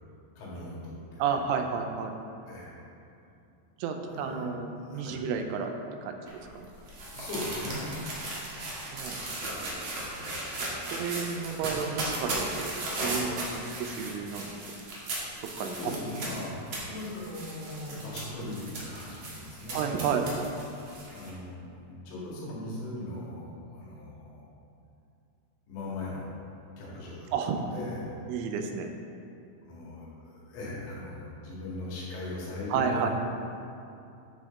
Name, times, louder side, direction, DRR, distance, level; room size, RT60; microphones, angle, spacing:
voice 1, 0.4-1.3 2.5-2.7 4.1-4.5 4.9-5.2 7.1-8.0 9.9-10.9 15.6-16.6 16.9-19.8 21.1-24.4 25.7-26.3 26.8-27.3 27.7-28.0 29.6-33.1, left 2 dB, 75° left, -6 dB, 4.3 m, -39 dB
voice 2, 1.2-2.1 3.8-5.7 6.0-6.2 6.6-6.7 8.9-9.2 10.9-12.7 13.0-14.8 15.6-16.0 19.7-20.3 27.3-27.6 28.3-28.9 32.7-33.1, right 6 dB, 90° right, 5 dB, 3.1 m, -31 dB
sound 1, 6.3-21.3, right 2 dB, 70° right, 1.4 m, -37 dB
10.5 x 6.4 x 3.7 m, 2.6 s
omnidirectional pair, 5.5 m